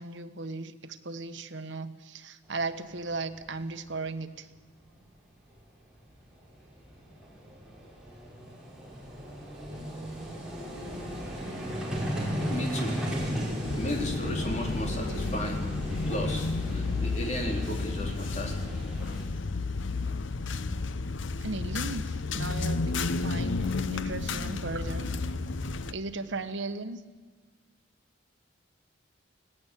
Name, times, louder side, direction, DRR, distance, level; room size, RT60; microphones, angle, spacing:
voice 1, 0.0-4.5 21.4-25.1 25.9-27.0, right 3 dB, 75° right, 9 dB, 1.3 m, -36 dB
Vehicle, 3.1-3.2 3.4-3.6 5.6-5.7 5.8-19.2, equal, 5° right, 5.6 m, -36 dB
voice 2, 12.5-13.0 13.8-15.7 16.1-18.7, left 1 dB, 35° left, 2 dB, 3.6 m, -34 dB
sound 1, 13.6-25.9, left 3 dB, 85° left, 0.8 m, -32 dB
20.0 x 17.0 x 8.4 m, 1.4 s
head